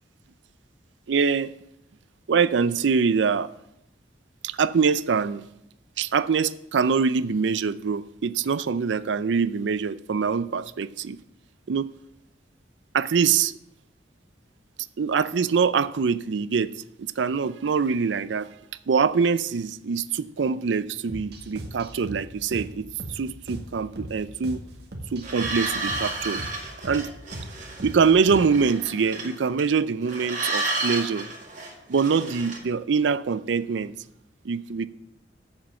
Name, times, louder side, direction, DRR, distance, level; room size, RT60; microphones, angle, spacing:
voice 1, 1.1-1.5 2.3-3.5 4.4-5.4 6.0-11.2 11.7-11.9 12.9-13.6 15.0-16.7 17.0-18.5 18.9-24.6 25.1-26.4 26.8-27.1 27.8-31.3 31.9-33.9 34.4-34.9, right 5 dB, 85° right, 0.5 m, -24 dB
sound 1, 21.1-28.7, equal, 65° right, 1.6 m, -39 dB
sound 2, 25.2-29.8 30.1-32.6, right 3 dB, 45° right, 2.1 m, -32 dB
7.7 x 7.2 x 6.9 m
head